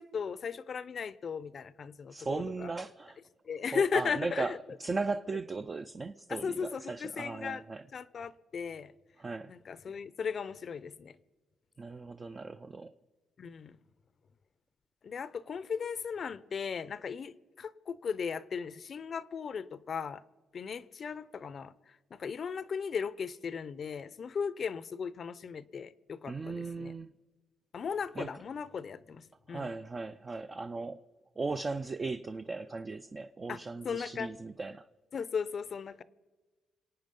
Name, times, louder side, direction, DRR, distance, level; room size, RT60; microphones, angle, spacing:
voice 1, 0.0-2.7 3.4-4.6 6.3-7.6 7.9-8.9 9.5-11.2 13.4-13.8 15.0-20.2 20.5-26.9 27.7-29.7 33.5-33.6 33.8-34.3 35.1-36.0, left 6 dB, 50° left, 0.6 m, -37 dB
voice 2, 2.1-3.2 3.7-7.8 9.2-9.5 11.8-12.9 26.3-27.1 28.2-28.3 29.5-31.0 31.4-34.9, right 3 dB, 30° right, 0.5 m, -37 dB
26.5 x 9.0 x 5.3 m
cardioid pair, 90°, 0 cm